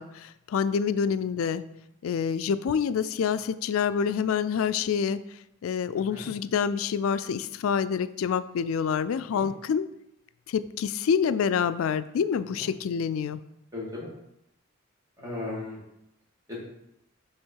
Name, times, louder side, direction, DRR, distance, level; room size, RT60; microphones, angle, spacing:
voice 1, 0.0-1.6 2.0-5.2 5.6-9.9 10.5-13.4, left 7 dB, 85° left, 14 dB, 0.3 m, -27 dB
voice 2, 13.7-14.1 15.2-15.8 16.5-16.6, left 2 dB, 15° right, -6 dB, 2.4 m, -36 dB
6.4 x 3.5 x 4.6 m, 0.83 s
head